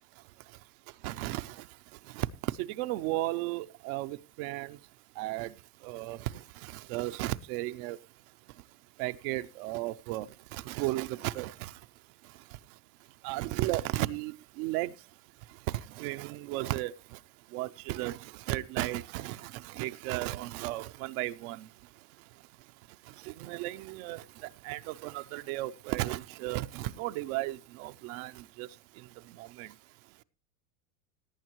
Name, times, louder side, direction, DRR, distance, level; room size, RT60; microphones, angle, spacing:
voice 1, 1.0-1.5 2.2-2.3 2.6-4.8 5.2-5.5 5.8-6.2 6.9-8.0 9.0-10.3 10.5-11.7 13.2-14.9 16.0-16.9 17.5-18.2 18.5-21.6 23.3-24.2 24.6-28.3 28.6-28.7 29.4-29.7, right 17 dB, 55° right, 0.7 m, -34 dB
18.0 x 8.8 x 3.0 m
supercardioid pair, 110°, 50 cm